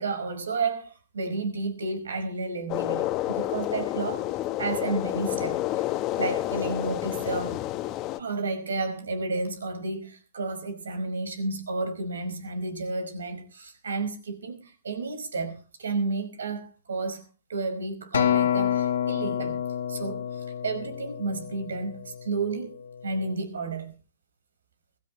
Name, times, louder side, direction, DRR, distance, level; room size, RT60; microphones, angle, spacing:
voice 1, 0.0-4.3 4.6-7.6 8.2-17.2 17.5-19.6 19.9-22.8 23.0-23.9, right 3 dB, 90° right, 5.1 m, -32 dB
sound 1, 2.7-8.2, left 15 dB, 35° left, 1.2 m, -29 dB
Acoustic guitar, 18.1-22.5 23.2-23.3, left 9 dB, 85° left, 2.1 m, -28 dB
19.5 x 16.0 x 3.2 m
hypercardioid pair, 130°, 0 cm